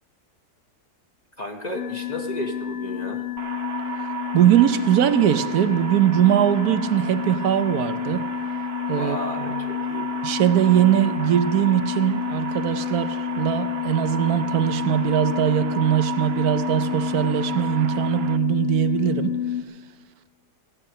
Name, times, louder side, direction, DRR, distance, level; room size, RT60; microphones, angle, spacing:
voice 1, 1.4-3.2 9.0-10.1, left 1 dB, 35° left, 3 dB, 0.8 m, -33 dB
sound 1, 1.7-19.6, left 10 dB, 60° left, 1.1 m, -29 dB
sound 2, 3.4-18.4, right 6 dB, 60° right, 0.7 m, -34 dB
voice 2, 4.3-8.2 8.9-9.5 10.2-19.4, right 11 dB, 75° right, 11 dB, 1.2 m, -21 dB
15.5 x 10.0 x 6.6 m, 1.5 s
omnidirectional pair, 1.7 m